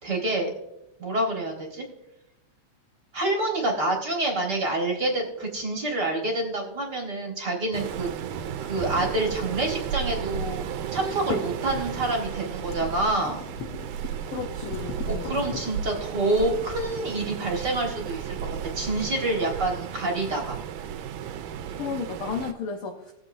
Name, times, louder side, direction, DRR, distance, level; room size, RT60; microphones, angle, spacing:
voice 1, 0.0-0.5 1.0-1.8 3.1-8.1 8.6-10.6 10.9-13.4 15.1-18.4 18.7-20.6, right 2 dB, 40° right, 0 dB, 1.7 m, -27 dB
Waves surf, 7.7-22.5, right 8 dB, 85° right, 2.1 m, -34 dB
sound 1, 7.8-10.1 10.4-17.7, left 6 dB, 65° left, 1.9 m, -42 dB
voice 2, 14.3-15.4 21.7-23.1, left 5 dB, 85° left, 3 dB, 1.1 m, -33 dB
19.5 x 7.4 x 2.7 m, 0.88 s
omnidirectional pair, 3.5 m